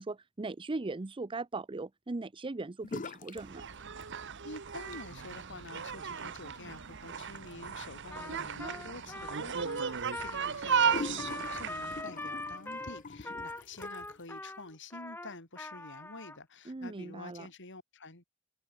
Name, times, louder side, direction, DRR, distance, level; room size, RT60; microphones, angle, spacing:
voice 1, 0.0-3.6 16.7-17.5, right 3 dB, 25° right, 0.5 m, -39 dB
sound 1, 2.8-3.4 3.7-4.4 4.8-14.2, left 3 dB, 35° left, 0.8 m, -46 dB
sound 2, 3.4-12.0, right 7 dB, 55° right, 1.0 m, -35 dB
voice 2, 4.4-18.2, left 2 dB, 55° left, 5.7 m, -48 dB
Trumpet, 8.1-16.4, left 2 dB, 10° left, 3.1 m, -42 dB
head